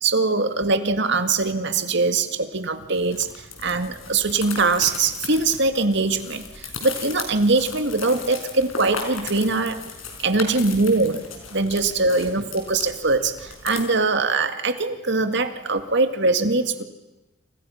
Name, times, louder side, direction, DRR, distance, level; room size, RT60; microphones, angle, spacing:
voice 1, 0.0-2.3 2.5-3.3 3.6-6.4 6.8-9.8 10.2-11.2 11.5-13.3 13.6-16.8, right 3 dB, 60° right, 8 dB, 2.0 m, -22 dB
sound 1, 2.9-13.8, left 5 dB, 85° left, 5.3 m, -37 dB
30.0 x 28.0 x 5.8 m, 1.0 s
head